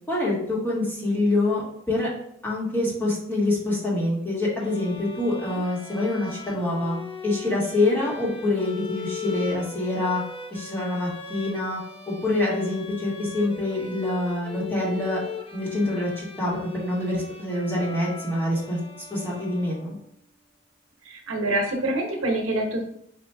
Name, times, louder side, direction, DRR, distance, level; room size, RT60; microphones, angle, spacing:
voice 1, 0.1-1.6 1.9-2.1 2.4-10.2 10.5-11.8 12.1-15.2 15.5-18.8 19.1-19.9, left 2 dB, 10° left, -6 dB, 1.4 m, -26 dB
sound 1, 4.6-20.2, left 5 dB, 25° left, 0.5 m, -40 dB
voice 2, 21.0-22.8, right 1 dB, 85° right, 1 dB, 0.9 m, -26 dB
4.3 x 2.7 x 3.4 m, 0.72 s
head